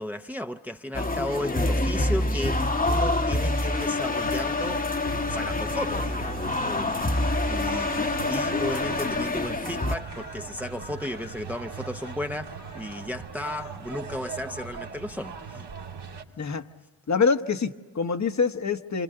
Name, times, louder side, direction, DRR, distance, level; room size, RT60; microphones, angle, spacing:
voice 1, 0.0-4.8 5.3-6.9 7.5-15.7, left 1 dB, 5° right, 0.7 m, -34 dB
sound 1, 0.9-10.0, left 2 dB, 20° left, 1.0 m, -26 dB
sound 2, 5.0-16.2, right 5 dB, 75° right, 2.1 m, -40 dB
sound 3, 7.6-13.8, left 7 dB, 75° left, 2.6 m, -51 dB
voice 2, 17.1-19.0, left 5 dB, 45° left, 1.1 m, -25 dB
28.5 x 25.5 x 6.6 m
cardioid pair, 70°, 41 cm